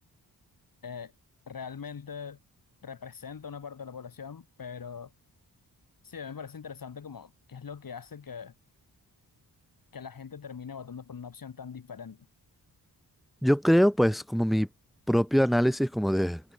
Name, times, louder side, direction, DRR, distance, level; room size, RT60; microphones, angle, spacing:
voice 1, 1.5-2.4 2.8-5.1 6.0-8.5 9.9-12.3, left 6 dB, 55° left, 4.0 m, -42 dB
voice 2, 13.4-14.7 15.1-16.5, equal, ahead, 1.9 m, -23 dB
wide cardioid pair, 115°, 40 cm